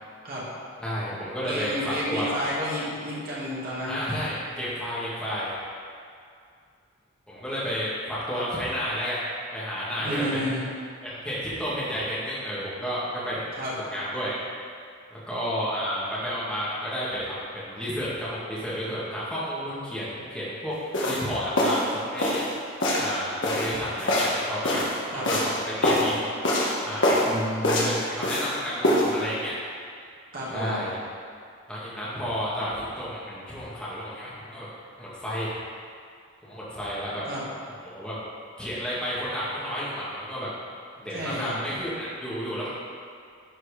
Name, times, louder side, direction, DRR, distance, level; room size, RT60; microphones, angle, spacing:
voice 1, 0.8-2.5 3.9-5.5 7.3-9.2 9.5-10.6 11.0-13.4 13.9-14.4 15.1-20.8 21.0-22.4 23.0-24.8 25.1-26.3 26.8-27.2 27.7-29.6 30.5-31.0 31.7-34.7 35.0-35.5 36.4-37.2 37.8-38.2 38.6-40.5 41.0-42.7, equal, 5° left, -10 dB, 2.0 m, -31 dB
voice 2, 1.4-4.0 10.0-10.7 13.6-13.7 25.1-25.3 27.2-27.9 30.3-30.8 37.3-37.4 41.1-41.6, equal, 45° right, -7 dB, 2.4 m, -31 dB
sound 1, 20.9-21.2 21.6-21.9 22.2-22.5 22.8-23.1 23.4-25.0 25.2-25.5 25.8-26.1 26.4-26.8 27.0-27.3 27.6-28.5 28.8-29.1, left 1 dB, 60° left, 1.7 m, -23 dB
11.5 x 4.8 x 5.0 m, 2.3 s
head